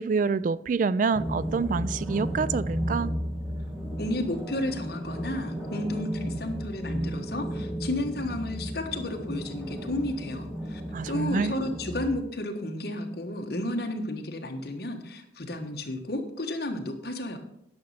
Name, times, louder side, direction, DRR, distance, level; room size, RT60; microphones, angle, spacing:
voice 1, 0.0-3.1 10.9-11.5, right 5 dB, 45° right, 0.3 m, -27 dB
sound 1, 1.1-12.2, equal, ahead, 1.6 m, -34 dB
voice 2, 4.0-10.8 11.1-17.4, left 1 dB, 60° left, 1.4 m, -32 dB
10.5 x 6.4 x 5.8 m
head